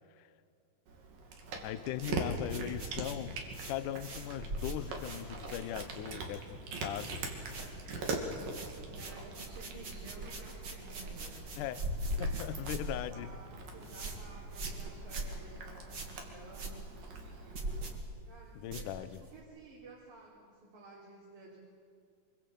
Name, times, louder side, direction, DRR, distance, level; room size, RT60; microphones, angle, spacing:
Cat, 0.9-18.0, right 3 dB, 85° right, 4.3 m, -43 dB
voice 1, 1.6-3.4 3.6-7.2 11.6-11.8 12.2-13.4 18.6-19.2, left 12 dB, 75° left, 14 dB, 2.3 m, -39 dB
sound 1, 1.9-6.3 6.6-7.2 7.4-19.4, right 1 dB, 40° right, 3.0 m, -42 dB
voice 2, 9.0-11.5 12.9-16.9 18.3-21.6, right 3 dB, 60° right, -5 dB, 4.9 m, -53 dB
25.0 x 25.0 x 6.9 m, 2.4 s
omnidirectional pair, 3.8 m